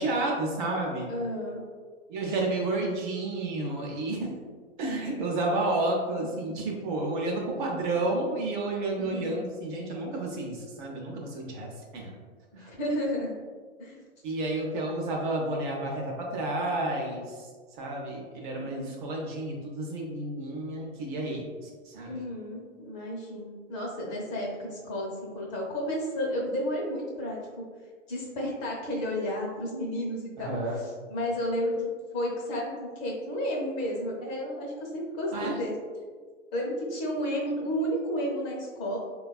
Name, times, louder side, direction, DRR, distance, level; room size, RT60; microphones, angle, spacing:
voice 1, 0.0-1.1 2.1-4.3 4.8-12.1 12.6-12.7 14.2-17.5 17.8-21.5 21.8-22.1 30.4-30.8 35.3-35.6, right 2 dB, 40° right, -1 dB, 0.6 m, -31 dB
voice 2, 1.1-1.6 9.0-9.4 12.5-13.3 13.8-14.0 18.5-19.0 22.1-27.6 28.1-35.7 36.5-39.0, equal, 35° left, -2 dB, 0.7 m, -32 dB
3.2 x 2.3 x 2.3 m, 1.5 s
hypercardioid pair, 120°, 37 cm